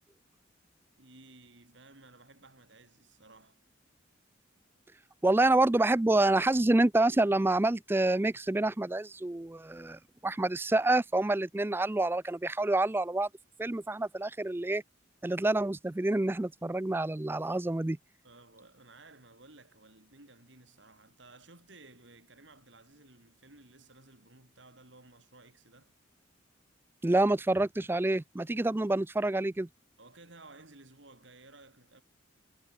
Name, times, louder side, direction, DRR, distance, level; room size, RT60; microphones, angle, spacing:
voice 1, 1.0-3.6 18.2-25.9 30.0-32.0, right 2 dB, 65° right, 5.1 m, -56 dB
voice 2, 5.2-13.3 13.6-14.8 15.2-18.0 27.0-29.7, right 2 dB, 10° right, 0.4 m, -27 dB
head